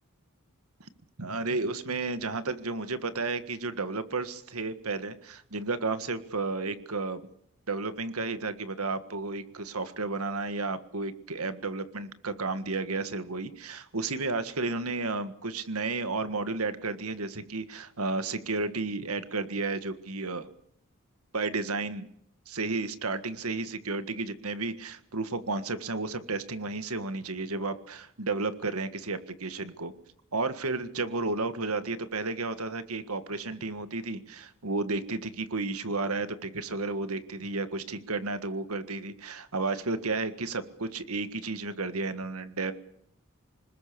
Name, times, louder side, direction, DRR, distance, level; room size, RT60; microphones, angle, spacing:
voice 1, 1.2-7.3 7.7-20.5 21.3-22.1 22.5-29.9 30.3-42.7, right 3 dB, 85° right, 11 dB, 1.7 m, -32 dB
26.0 x 20.5 x 7.0 m, 0.70 s
head